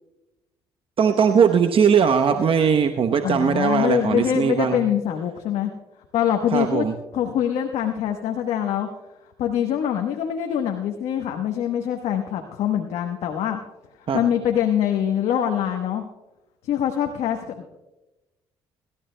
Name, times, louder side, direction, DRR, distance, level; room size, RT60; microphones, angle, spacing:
voice 1, 1.0-4.8 6.5-6.9 14.1-14.2, right 7 dB, 55° right, 6 dB, 0.9 m, -19 dB
voice 2, 3.2-5.7 6.1-6.9 7.1-8.9 9.4-13.6 14.0-16.0 16.6-17.8, left 9 dB, 70° left, 4 dB, 1.1 m, -24 dB
24.5 x 13.0 x 2.2 m, 1.1 s
supercardioid pair, 60°, 11 cm